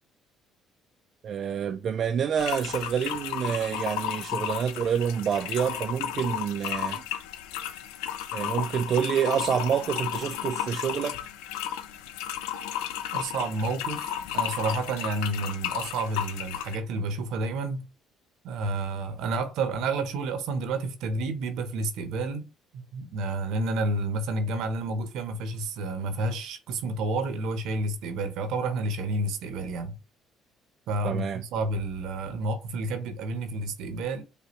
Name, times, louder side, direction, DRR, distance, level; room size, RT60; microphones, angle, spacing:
voice 1, 1.2-7.0 8.3-11.2 31.0-31.4, right 8 dB, 55° right, 0.3 m, -28 dB
sound 1, 2.4-16.8, left 10 dB, 85° left, 0.4 m, -33 dB
voice 2, 13.1-17.8 18.4-22.5 22.7-29.9 30.9-34.2, right 2 dB, 75° right, 0.8 m, -30 dB
5.2 x 2.2 x 2.9 m
supercardioid pair, 70°, 0 cm